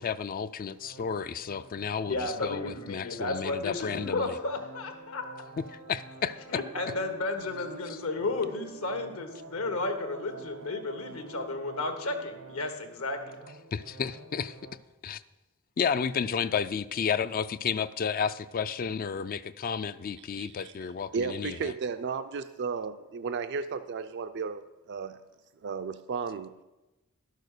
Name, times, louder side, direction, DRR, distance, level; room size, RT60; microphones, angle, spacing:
voice 1, 0.0-4.4 5.6-6.6 7.9-8.0 13.7-14.6 15.0-15.2 15.8-21.7, left 6 dB, 40° left, 13 dB, 0.3 m, -32 dB
sound 1, 0.8-14.7, right 4 dB, 80° right, 1.0 m, -48 dB
voice 2, 2.0-5.2 6.5-13.4, left 2 dB, 75° left, 6 dB, 1.4 m, -33 dB
voice 3, 20.4-20.7 21.1-25.2 25.6-26.6, right 5 dB, 55° right, 10 dB, 0.4 m, -34 dB
12.0 x 6.4 x 6.6 m, 1.1 s
head